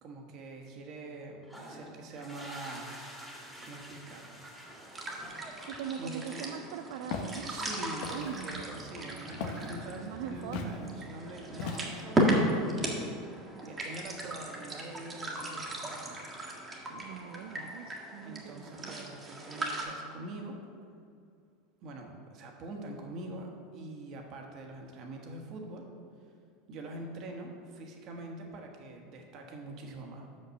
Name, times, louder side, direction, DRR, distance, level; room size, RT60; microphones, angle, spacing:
voice 1, 0.0-3.0 3.6-4.5 5.9-6.5 7.4-16.2 18.2-20.6 21.8-25.8 26.7-30.3, right 2 dB, 50° right, 2 dB, 1.4 m, -44 dB
sound 1, 1.4-6.0, equal, 5° right, 1.8 m, -48 dB
sound 2, 4.7-19.8, right 1 dB, 20° right, 1.6 m, -36 dB
voice 2, 5.6-7.5 8.1-8.6 10.0-11.0 16.9-19.1, right 8 dB, 70° right, 6 dB, 0.4 m, -41 dB
Walk footsteps, 7.1-7.4 8.0-8.4 9.4-9.7 10.5-10.8 11.6-12.1, left 5 dB, 65° left, 0.8 m, -37 dB
5.9 x 5.5 x 6.3 m, 2.3 s
hypercardioid pair, 105°, 0 cm